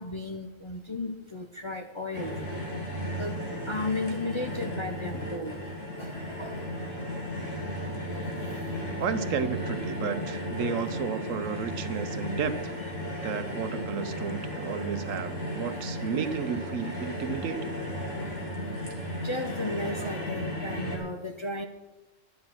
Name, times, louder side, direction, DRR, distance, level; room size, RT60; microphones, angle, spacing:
voice 1, 0.0-2.3 3.2-3.4 3.7-5.6 6.0-6.6 11.9-12.0 19.2-21.7, left 2 dB, 30° left, 2 dB, 0.7 m, -34 dB
sound 1, 2.1-21.0, equal, 70° left, 2.8 m, -35 dB
voice 2, 9.0-12.7 13.2-17.7, right 7 dB, 75° right, 11 dB, 1.2 m, -32 dB
11.5 x 10.5 x 6.1 m, 1.1 s
omnidirectional pair, 1.4 m